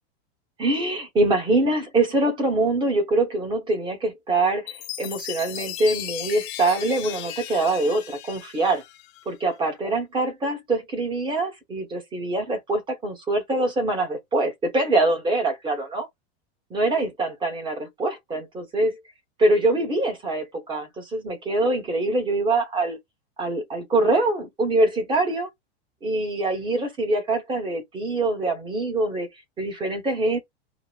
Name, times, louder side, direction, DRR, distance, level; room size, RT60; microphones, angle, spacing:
voice 1, 0.6-8.8 9.3-16.1 16.7-19.0 19.4-23.0 23.4-25.5 26.0-29.3 29.6-30.4, right 2 dB, 15° right, 1.0 m, -24 dB
Chime, 4.7-9.3, left 13 dB, 35° left, 0.6 m, -36 dB
4.7 x 2.1 x 2.3 m
supercardioid pair, 160°, 33 cm